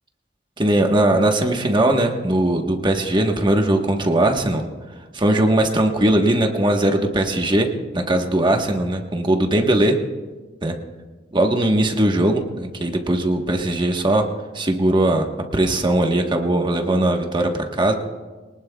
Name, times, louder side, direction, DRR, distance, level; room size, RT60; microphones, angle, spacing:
voice 1, 0.6-4.6 5.1-7.7 7.9-10.0 10.6-10.7 11.3-14.2 14.5-15.3 15.5-17.9, right 1 dB, 25° right, 3 dB, 1.2 m, -19 dB
23.0 x 19.0 x 2.3 m, 1.3 s
head